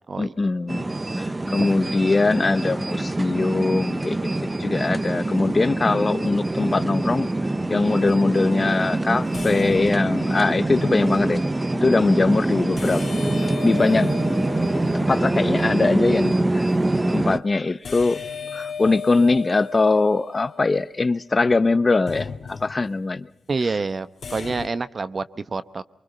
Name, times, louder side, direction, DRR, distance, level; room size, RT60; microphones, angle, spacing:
voice 1, 0.2-0.9 1.2-4.2 4.6-7.3 7.7-11.4 11.7-14.1 14.9-16.7 17.1-18.2 18.5-23.3, left 3 dB, 35° left, 0.9 m, -22 dB
sound 1, 0.7-17.4, right 2 dB, 25° right, 0.8 m, -24 dB
sound 2, 7.6-7.9 9.3-10.9 12.8-15.8 17.8-21.2 22.1-23.1 24.2-24.7, left 6 dB, 65° left, 1.9 m, -36 dB
voice 2, 23.5-25.8, right 4 dB, 45° right, 0.9 m, -27 dB
24.0 x 24.0 x 5.5 m
cardioid pair, 65°, 0 cm